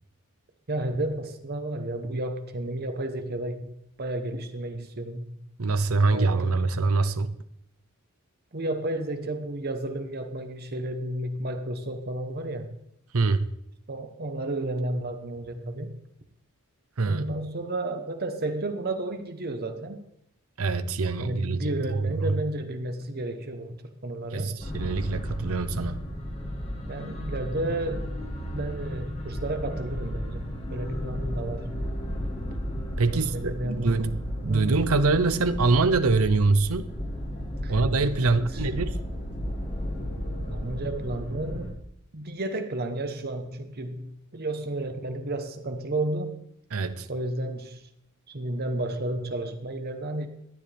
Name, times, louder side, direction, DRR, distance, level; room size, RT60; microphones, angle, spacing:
voice 1, 0.7-5.4 6.1-6.5 8.5-12.7 13.9-16.0 17.1-20.0 21.2-24.6 26.9-28.1 28.5-31.8 33.1-34.0 34.5-34.8 37.6-37.7 38.2-38.7 40.5-41.8 42.1-46.4 47.1-47.9 48.3-50.3, right 1 dB, 45° right, 1.0 m, -32 dB
voice 2, 5.6-7.3 13.1-13.5 17.0-17.3 20.6-22.4 24.3-26.1 33.0-36.9 37.7-39.0 46.7-47.1, right 3 dB, 75° right, 0.7 m, -24 dB
sound 1, 24.6-41.7, equal, 30° left, 1.9 m, -34 dB
17.0 x 10.5 x 3.4 m
head